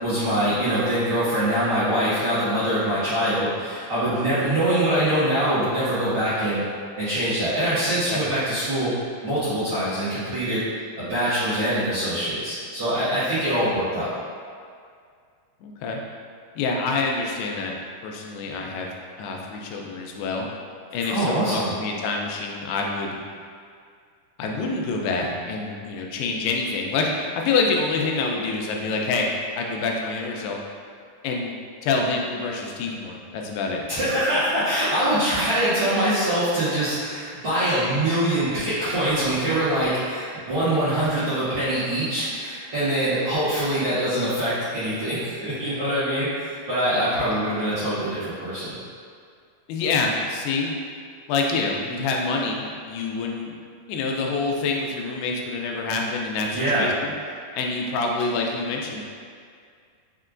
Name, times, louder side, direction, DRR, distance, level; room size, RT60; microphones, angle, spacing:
voice 1, 0.0-6.6 7.0-8.9 9.2-10.6 11.0-14.1 21.1-21.7 33.9-48.7 56.5-56.9, right 1 dB, 60° right, -16 dB, 1.5 m, -24 dB
voice 2, 15.6-16.0 16.6-17.7 18.0-18.9 19.2-20.5 20.9-23.2 24.4-29.3 29.6-30.6 31.2-31.5 31.8-33.8 49.7-50.7 51.3-53.5 53.9-57.1 57.6-59.0, left 4 dB, 90° left, 0 dB, 2.5 m, -26 dB
6.5 x 2.2 x 2.4 m, 2.2 s
omnidirectional pair, 4.4 m